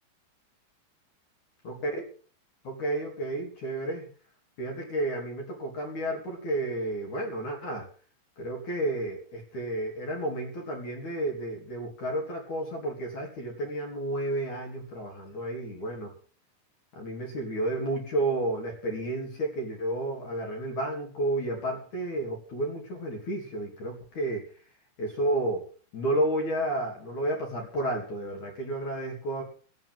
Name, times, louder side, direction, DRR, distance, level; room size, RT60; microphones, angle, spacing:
voice 1, 1.6-2.0 2.6-4.1 4.6-7.9 8.4-16.1 17.0-24.5 25.0-25.6 25.9-29.4, right 1 dB, 40° left, 1 dB, 4.1 m, -31 dB
16.0 x 8.7 x 7.9 m, 0.43 s
omnidirectional pair, 5.8 m